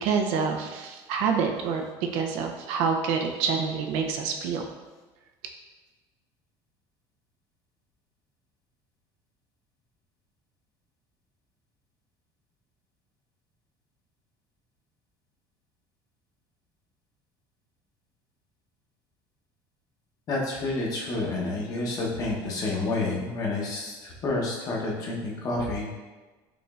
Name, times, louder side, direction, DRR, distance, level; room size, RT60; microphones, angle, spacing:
voice 1, 0.0-1.8 2.1-4.7, right 6 dB, 70° right, 4 dB, 0.5 m, -27 dB
voice 2, 20.3-25.9, left 2 dB, 35° left, -3 dB, 0.9 m, -29 dB
4.9 x 3.1 x 2.4 m, 1.3 s
cardioid pair, 150°, 10 cm